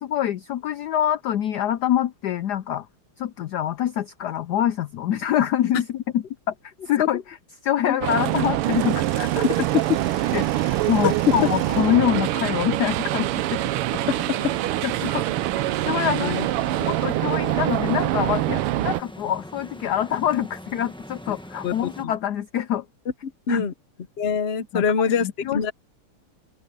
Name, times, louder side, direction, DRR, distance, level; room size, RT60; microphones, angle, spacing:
voice 1, 0.0-2.9 3.2-6.5 6.9-7.4 7.6-9.4 10.3-13.6 14.8-15.2 15.8-16.4 16.8-22.8 23.5-23.6 24.7-25.7, left 11 dB, 85° left, 0.9 m, -25 dB
sound 1, 8.0-19.0, right 15 dB, 85° right, 1.6 m, -24 dB
Mechanisms, 8.2-14.1, right 7 dB, 65° right, 2.5 m, -42 dB
voice 2, 9.4-9.8 11.0-11.3 14.0-14.5 16.2-16.5 21.6-21.7 22.0-22.1 23.5-23.7 24.2-25.7, left 6 dB, 55° left, 0.7 m, -24 dB
sound 2, 12.7-22.0, equal, 5° left, 0.8 m, -41 dB
open air
omnidirectional pair, 2.4 m